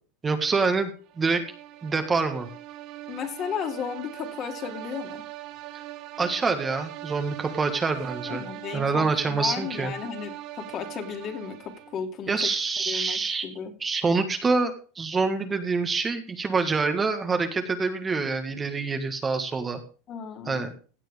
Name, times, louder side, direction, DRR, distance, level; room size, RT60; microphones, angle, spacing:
voice 1, 0.2-0.9 1.2-1.4 1.8-2.5 6.2-8.4 8.7-9.9 12.3-13.5 13.8-19.8 20.4-20.7, right 4 dB, 20° right, 7 dB, 1.7 m, -26 dB
sound 1, 1.1-12.1, right 15 dB, 50° right, 1.6 m, -41 dB
voice 2, 3.1-5.2 8.3-12.5 12.9-13.7 20.1-20.7, left 7 dB, 40° left, 5 dB, 2.8 m, -34 dB
16.0 x 7.6 x 3.5 m, 0.37 s
supercardioid pair, 125°, 0 cm